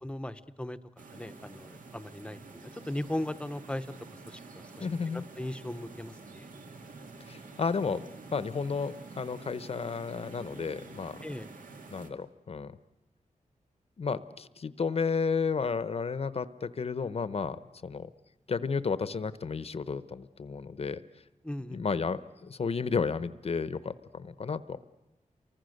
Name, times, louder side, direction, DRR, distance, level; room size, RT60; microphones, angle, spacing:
voice 1, 0.0-3.9 4.3-4.9 5.1-6.5 11.2-11.5 21.4-21.8, left 1 dB, 10° left, 13 dB, 0.8 m, -38 dB
sound 1, 1.0-12.1, right 3 dB, 75° right, 2.3 m, -48 dB
voice 2, 4.8-5.2 7.3-8.0 8.3-11.2 11.9-12.8 14.0-18.1 18.5-21.0 21.7-24.8, left 5 dB, 50° left, 14 dB, 0.8 m, -32 dB
29.5 x 24.5 x 6.5 m, 1.0 s
wide cardioid pair, 140°, 14 cm